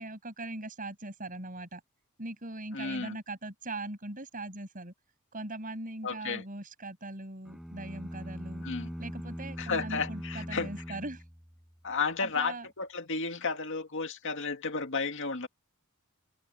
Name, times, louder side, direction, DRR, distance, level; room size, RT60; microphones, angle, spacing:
voice 1, 0.0-1.8 2.2-4.9 5.3-8.6 9.0-11.2 12.2-12.7, right 2 dB, 40° right, 7.4 m, -40 dB
voice 2, 2.7-3.2 6.0-6.4 8.6-8.9 9.6-11.0 11.8-15.5, left 4 dB, 60° left, 2.2 m, -33 dB
sound 1, 7.5-11.8, equal, ahead, 6.7 m, -41 dB
head